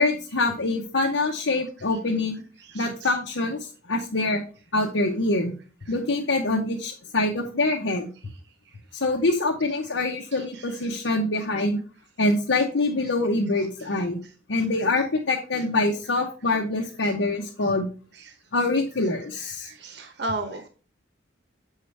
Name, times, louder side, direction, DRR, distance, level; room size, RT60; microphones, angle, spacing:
voice 1, 0.0-2.4 2.7-3.6 3.9-4.4 4.7-5.5 5.9-8.1 9.0-11.8 12.2-14.2 14.5-17.9 18.5-19.7, left 2 dB, 85° left, 0 dB, 1.0 m, -25 dB
voice 2, 19.6-20.7, right 2 dB, 65° right, 6 dB, 0.9 m, -32 dB
7.4 x 5.7 x 3.3 m, 0.37 s
head